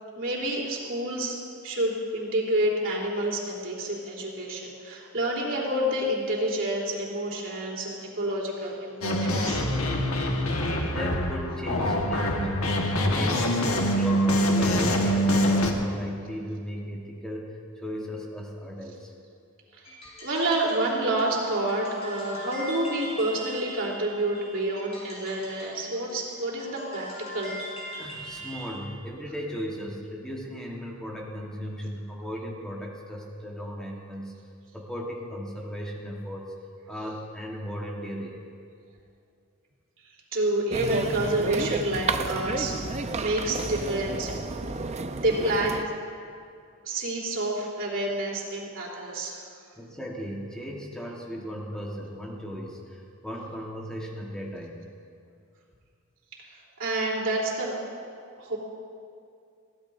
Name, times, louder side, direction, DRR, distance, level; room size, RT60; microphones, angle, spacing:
voice 1, 0.1-1.4 1.6-9.6 19.7-19.8 20.2-27.1 27.3-27.5 40.3-44.4 45.2-45.8 46.8-49.4 56.8-57.8 58.4-58.6, right 1 dB, 60° right, -4 dB, 3.3 m, -28 dB
sound 1, 9.0-15.7, equal, 80° left, 1.5 m, -24 dB
voice 2, 10.8-19.1 27.9-34.3 34.7-36.5 36.9-38.3 49.8-54.8, equal, 5° left, -3 dB, 1.3 m, -36 dB
sound 2, 19.8-28.9, equal, 30° left, 4.3 m, -42 dB
sound 3, 40.7-45.8, right 3 dB, 30° right, 0.5 m, -31 dB
22.5 x 16.0 x 2.6 m, 2.3 s
head